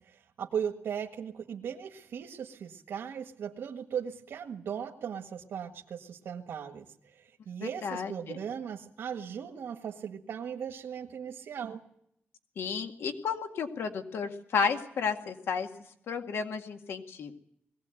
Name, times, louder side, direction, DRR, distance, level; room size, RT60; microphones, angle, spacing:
voice 1, 0.0-11.8, right 8 dB, 80° right, 3 dB, 1.7 m, -38 dB
voice 2, 7.6-8.4 12.6-15.7 16.1-17.3, left 6 dB, 75° left, 6 dB, 2.1 m, -32 dB
21.5 x 17.0 x 9.1 m, 0.73 s
wide cardioid pair, 150°, 4 cm